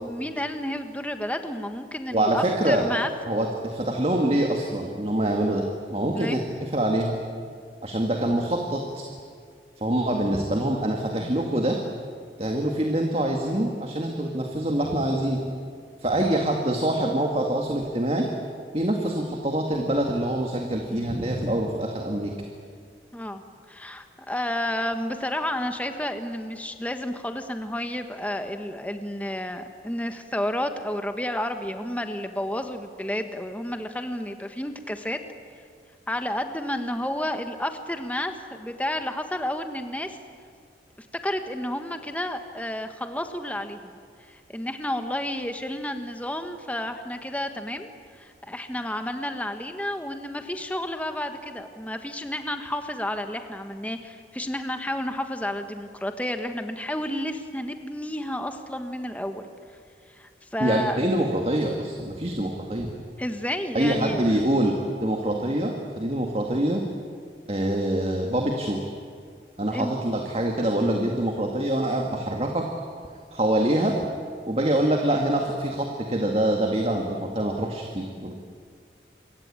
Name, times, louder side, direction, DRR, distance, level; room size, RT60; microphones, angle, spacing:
voice 1, 0.0-3.1 6.1-6.4 23.1-23.4 23.7-35.2 36.1-40.2 41.0-43.9 44.3-47.9 48.2-59.4 60.2-61.0 63.2-64.4 69.7-70.0, left 1 dB, 10° left, 7 dB, 1.3 m, -31 dB
voice 2, 2.1-2.8 3.3-7.2 7.8-9.1 9.8-11.8 12.4-15.4 16.0-18.3 18.7-22.3 60.6-62.9 63.7-66.8 67.5-68.8 69.6-72.7 73.3-73.9 74.5-78.3, right 1 dB, 35° right, 2 dB, 2.1 m, -25 dB
27.5 x 23.0 x 8.9 m, 2.1 s
head